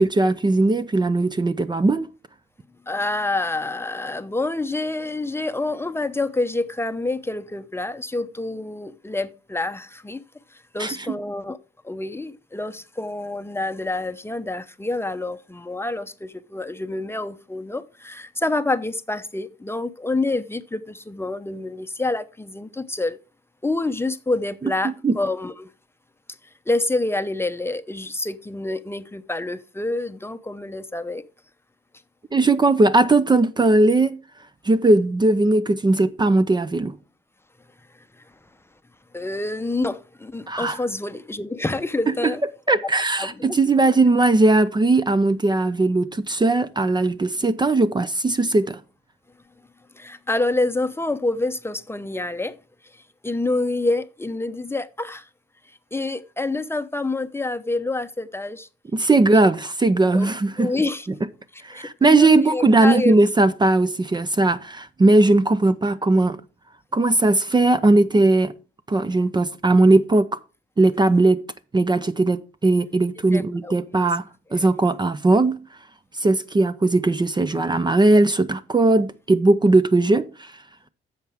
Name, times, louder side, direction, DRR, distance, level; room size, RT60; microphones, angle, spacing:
voice 1, 0.0-2.1 10.8-11.2 24.6-25.2 32.3-34.2 34.6-36.9 40.5-40.8 42.1-42.3 42.7-48.8 58.9-60.7 61.6-66.4 66.9-68.5 68.9-70.3 70.8-71.4 71.7-74.2 74.5-75.6 76.2-80.5, right 2 dB, 20° right, 0.6 m, -18 dB
voice 2, 2.9-10.2 10.5-11.6 11.8-23.2 23.6-25.7 26.7-31.2 39.1-42.4 43.2-43.6 49.9-52.6 52.9-55.3 55.9-58.7 60.1-60.3 60.6-61.1 61.7-63.2 73.3-73.7 74.5-74.7, left 2 dB, 10° left, 0.7 m, -27 dB
10.5 x 7.3 x 3.5 m
cardioid pair, 90°, 20 cm